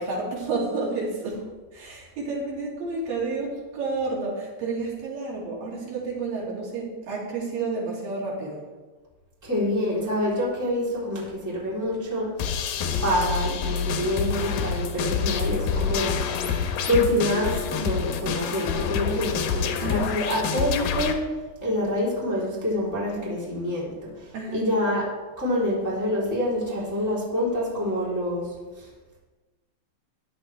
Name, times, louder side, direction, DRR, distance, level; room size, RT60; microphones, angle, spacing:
voice 1, 0.0-1.4 1.7-8.6 19.8-20.1 24.3-24.7, right 3 dB, 75° right, -5 dB, 4.4 m, -30 dB
voice 2, 9.4-12.6 13.0-16.1 16.5-21.2 21.6-25.0 25.4-28.4 28.8-28.9, left 1 dB, 5° right, -7 dB, 2.9 m, -27 dB
sound 1, 12.4-21.1, left 6 dB, 85° left, 2.7 m, -27 dB
13.5 x 10.5 x 3.3 m, 1.3 s
omnidirectional pair, 4.0 m